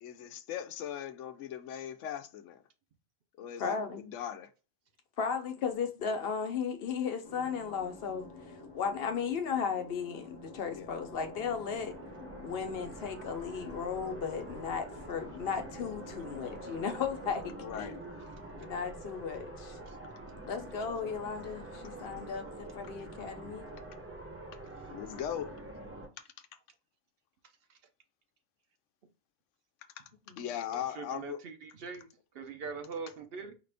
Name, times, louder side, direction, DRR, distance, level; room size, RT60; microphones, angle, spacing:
voice 1, 0.0-2.6 3.4-4.5 10.7-10.9 17.6-18.3 24.9-25.6 26.2-26.3 30.0-30.1 30.4-31.4, left 10 dB, 85° left, 0.9 m, -39 dB
voice 2, 3.6-4.0 5.2-12.0 12.4-18.0 18.6-19.8 20.4-23.7 30.3-30.5, left 6 dB, 60° left, 0.9 m, -35 dB
sound 1, 7.2-18.0, left 2 dB, 25° left, 0.7 m, -50 dB
sound 2, 10.2-26.1, right 2 dB, 15° right, 0.7 m, -46 dB
voice 3, 30.7-32.1 32.3-33.5, right 5 dB, 60° right, 0.8 m, -42 dB
4.9 x 2.5 x 3.3 m
omnidirectional pair, 1.2 m